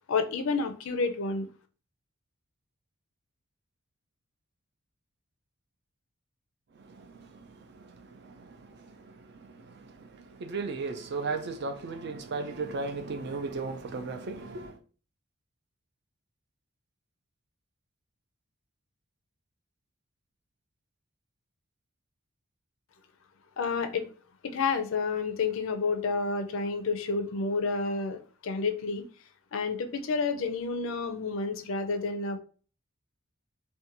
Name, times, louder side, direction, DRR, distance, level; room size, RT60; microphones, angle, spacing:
voice 1, 0.1-1.5 23.6-24.1 24.4-29.0 29.5-32.4, left 4 dB, 65° left, 0.4 m, -30 dB
voice 2, 6.8-14.8, right 4 dB, 50° right, 0.4 m, -37 dB
2.5 x 2.2 x 2.8 m
head